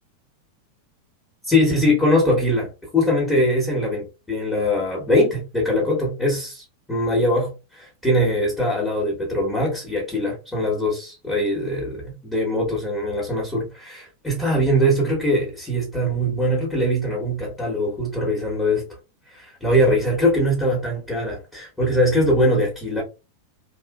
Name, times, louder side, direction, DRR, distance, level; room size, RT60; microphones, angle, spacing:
voice 1, 1.4-18.9 19.3-23.0, equal, 10° left, 1.2 m, -22 dB
3.1 x 2.4 x 2.3 m
figure-of-eight pair, 90°, 0 cm